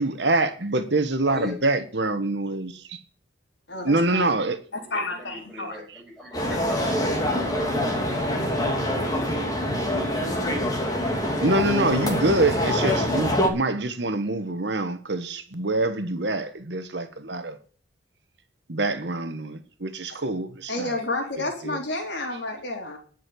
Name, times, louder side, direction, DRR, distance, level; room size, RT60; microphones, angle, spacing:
voice 1, 0.0-3.0 3.8-4.6 11.4-17.6 18.7-21.0 21.6-21.8, right 2 dB, 65° right, 1.3 m, -25 dB
voice 2, 1.3-1.6 4.3-4.4 4.7-8.8, left 2 dB, ahead, 7.2 m, -39 dB
voice 3, 3.7-4.3 4.9-5.7 20.7-23.0, left 2 dB, 65° left, 3.7 m, -30 dB
sound 1, 6.3-13.5, left 1 dB, 20° left, 2.6 m, -25 dB
11.0 x 6.6 x 9.3 m
head